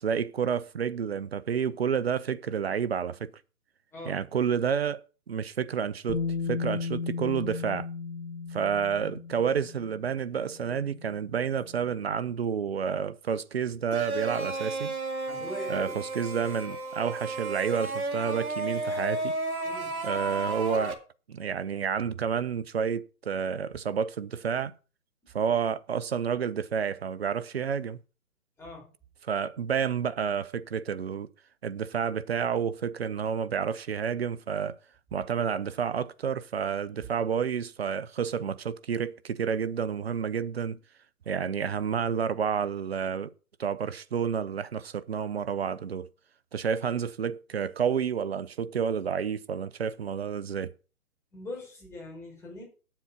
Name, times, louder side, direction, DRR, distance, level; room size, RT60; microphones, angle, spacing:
voice 1, 0.0-3.3 4.1-5.0 5.3-7.9 8.5-14.9 15.7-19.3 20.0-20.9 21.3-24.7 25.3-28.0 29.3-31.3 31.6-34.8 35.1-40.8 41.3-43.3 43.6-46.1 46.5-50.7, right 7 dB, 45° right, 0.7 m, -30 dB
voice 2, 3.9-4.2 15.3-16.0 19.6-20.0 28.6-28.9 51.3-52.6, left 1 dB, 5° left, 4.7 m, -41 dB
Bass guitar, 6.1-12.1, left 5 dB, 45° left, 2.9 m, -36 dB
sound 1, 13.9-20.9, right 2 dB, 70° right, 2.7 m, -33 dB
9.3 x 7.5 x 5.8 m
figure-of-eight pair, 140°, 45 cm